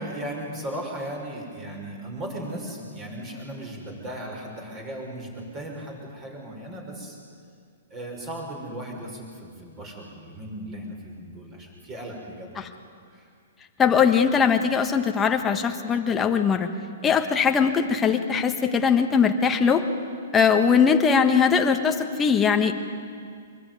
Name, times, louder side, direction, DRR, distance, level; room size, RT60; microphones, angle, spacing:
voice 1, 0.0-7.2 7.9-12.5 13.1-13.3, right 1 dB, 20° right, 1 dB, 5.7 m, -36 dB
voice 2, 13.8-16.7 17.0-19.8 20.3-22.7, left 6 dB, 10° left, 4 dB, 1.4 m, -20 dB
24.5 x 22.0 x 9.5 m, 2.2 s
hypercardioid pair, 160°, 0 cm